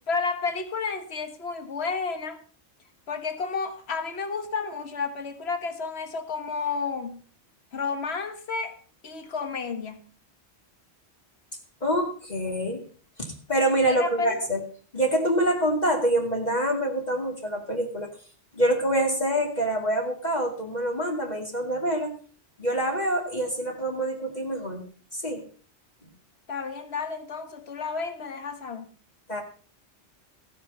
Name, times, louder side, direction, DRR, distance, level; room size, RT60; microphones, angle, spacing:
voice 1, 0.1-2.4 3.1-7.2 7.7-8.8 9.0-10.0 13.9-14.4 26.5-28.9, left 5 dB, 70° left, 8 dB, 1.7 m, -31 dB
voice 2, 11.8-12.8 13.2-14.6 14.9-18.1 18.6-22.1 22.6-24.8 25.1-25.4 29.3-29.4, right 1 dB, 40° left, 1 dB, 2.5 m, -26 dB
15.5 x 9.5 x 5.4 m, 0.40 s
omnidirectional pair, 1.1 m